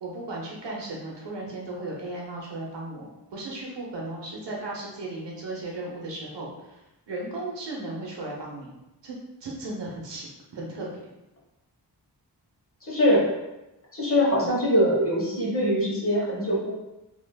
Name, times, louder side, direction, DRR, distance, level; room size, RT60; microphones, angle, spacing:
voice 1, 0.0-6.8 7.1-8.7 9.0-10.3 10.5-10.9, right 2 dB, 80° right, -2 dB, 0.8 m, -36 dB
voice 2, 12.9-13.3 13.9-16.7, equal, 30° left, -5 dB, 1.0 m, -22 dB
3.3 x 2.4 x 2.2 m, 0.95 s
wide cardioid pair, 70°, 42 cm